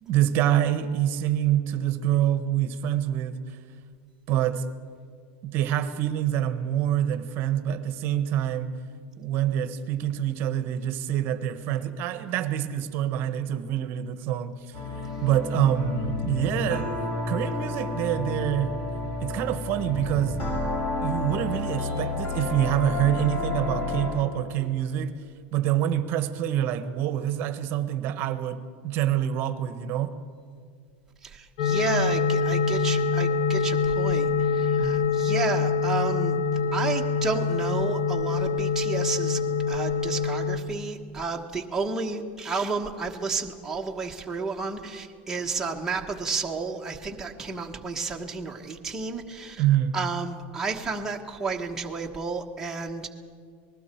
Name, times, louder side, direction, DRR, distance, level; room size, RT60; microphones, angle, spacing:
voice 1, 0.0-3.4 4.3-4.6 5.4-8.7 9.2-14.5 15.2-16.9 17.3-18.7 19.2-20.4 21.0-25.1 25.5-30.1 34.8-35.2 49.6-50.0, right 11 dB, 35° right, 11 dB, 1.2 m, -26 dB
sound 1, 14.7-24.2, left 3 dB, 35° left, 6.0 m, -31 dB
voice 2, 31.2-36.4 36.7-39.4 39.7-49.6 49.9-53.1, right 4 dB, 10° right, -1 dB, 1.3 m, -31 dB
sound 2, 31.6-40.6, left 5 dB, 65° left, 1.4 m, -25 dB
29.5 x 20.0 x 4.5 m, 2.1 s
supercardioid pair, 165°, 6 cm